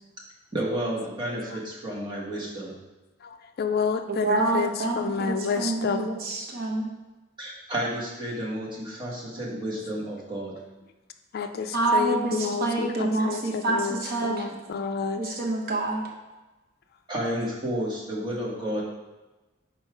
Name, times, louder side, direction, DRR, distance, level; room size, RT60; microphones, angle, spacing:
voice 1, 0.5-2.8 7.4-10.5 17.1-18.8, right 1 dB, 25° right, -5 dB, 1.5 m, -31 dB
voice 2, 3.2-6.1 11.3-15.4, left 6 dB, 50° left, 7 dB, 0.4 m, -30 dB
voice 3, 4.1-6.9 11.7-14.5 15.2-16.0, right 2 dB, 50° right, 1 dB, 0.8 m, -27 dB
5.6 x 4.4 x 4.6 m, 1.1 s
head